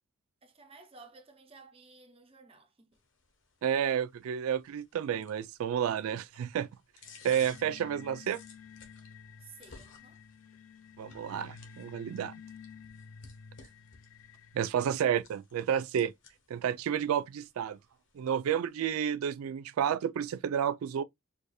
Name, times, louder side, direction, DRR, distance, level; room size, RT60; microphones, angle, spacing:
voice 1, 0.4-3.0 9.4-10.2, right 4 dB, 25° right, 0.7 m, -55 dB
sound 1, 2.9-18.9, left 5 dB, 60° left, 1.1 m, -58 dB
voice 2, 3.6-6.7 7.2-8.4 11.0-12.3 14.5-16.1 16.5-17.8 18.2-21.0, right 9 dB, 85° right, 0.3 m, -31 dB
sound 2, 7.0-14.7, left 6 dB, 90° left, 0.4 m, -51 dB
4.8 x 2.6 x 2.2 m
head